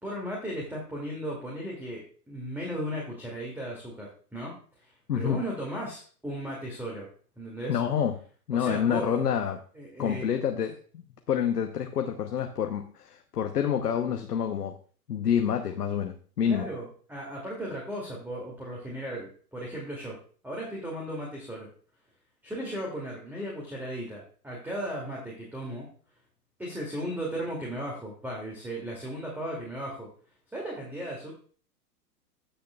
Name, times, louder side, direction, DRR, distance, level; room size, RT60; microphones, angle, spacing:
voice 1, 0.0-7.1 7.4-7.8 8.5-9.4 9.8-10.4 16.4-20.2 20.4-21.7 22.4-25.9 26.6-30.1 30.5-31.3, right 1 dB, 5° right, -3 dB, 2.5 m, -36 dB
voice 2, 5.1-5.4 7.7-8.2 8.5-9.6 10.0-10.8 11.3-14.7 15.1-16.7, left 8 dB, 75° left, 5 dB, 1.0 m, -27 dB
16.5 x 6.8 x 2.4 m, 0.42 s
figure-of-eight pair, 100°, 47 cm